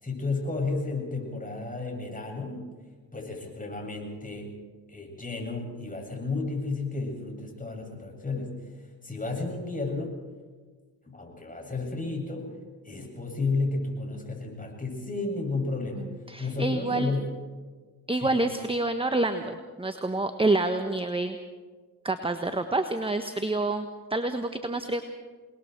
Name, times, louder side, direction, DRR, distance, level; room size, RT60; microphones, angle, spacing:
voice 1, 0.0-2.7 3.1-4.6 4.9-8.6 9.0-10.2 11.0-12.5 12.8-16.1 16.4-17.3 18.2-18.4, left 3 dB, 15° left, 1 dB, 7.6 m, -32 dB
voice 2, 16.3-17.1 18.1-21.4 22.0-25.0, right 2 dB, 10° right, 8 dB, 1.4 m, -27 dB
28.5 x 20.5 x 4.7 m, 1.4 s
hypercardioid pair, 55°, 50 cm